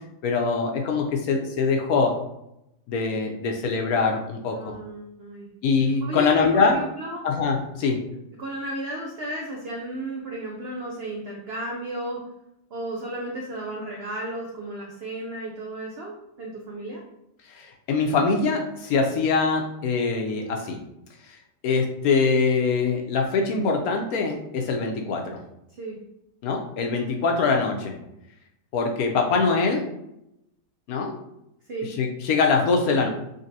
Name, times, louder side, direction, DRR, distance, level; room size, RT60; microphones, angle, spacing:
voice 1, 0.2-2.1 2.9-4.7 5.6-6.8 7.2-8.0 17.5-20.8 21.3-21.4 21.6-25.4 26.4-27.9 28.7-29.9 30.9-31.1 32.0-33.1, left 4 dB, 70° left, 2 dB, 1.0 m, -23 dB
voice 2, 4.5-5.5 6.0-7.3 8.4-12.3 12.7-17.0 25.7-26.0 31.7-31.9, right 1 dB, 75° right, -1 dB, 0.5 m, -34 dB
3.9 x 3.5 x 2.7 m, 0.82 s
omnidirectional pair, 1.8 m